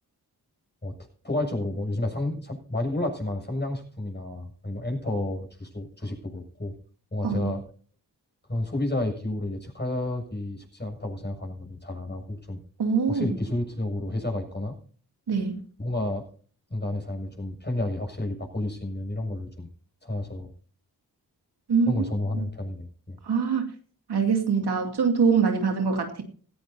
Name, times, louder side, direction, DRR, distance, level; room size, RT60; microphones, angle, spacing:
voice 1, 1.2-6.8 7.1-7.6 8.5-12.6 13.1-14.8 15.8-16.3 16.7-19.7 20.0-20.5 21.9-23.2, left 1 dB, 25° left, 3 dB, 7.3 m, -31 dB
voice 2, 12.8-13.3 15.3-15.6 21.7-22.5 23.2-23.7 24.1-26.2, right 5 dB, 80° right, 4 dB, 2.5 m, -24 dB
17.5 x 15.0 x 2.8 m, 0.42 s
cardioid pair, 45°, 39 cm